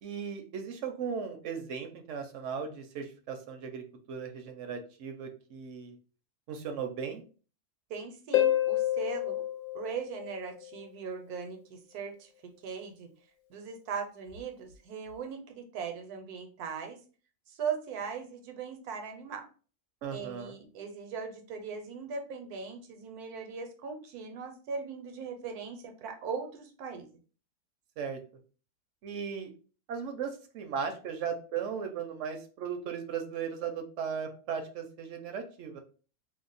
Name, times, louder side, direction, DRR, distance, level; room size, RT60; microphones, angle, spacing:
voice 1, 0.0-6.0 6.5-7.2 20.0-20.5 28.0-28.2 29.0-29.5 29.9-35.8, right 6 dB, 65° right, 6 dB, 0.8 m, -37 dB
voice 2, 7.9-9.4 9.7-13.1 13.5-17.0 17.5-19.4 20.1-27.1, right 6 dB, 85° right, 5 dB, 1.2 m, -39 dB
Harp, 8.3-10.8 14.3-14.4, left 13 dB, 70° left, 1.0 m, -29 dB
2.8 x 2.0 x 3.8 m, 0.38 s
omnidirectional pair, 1.6 m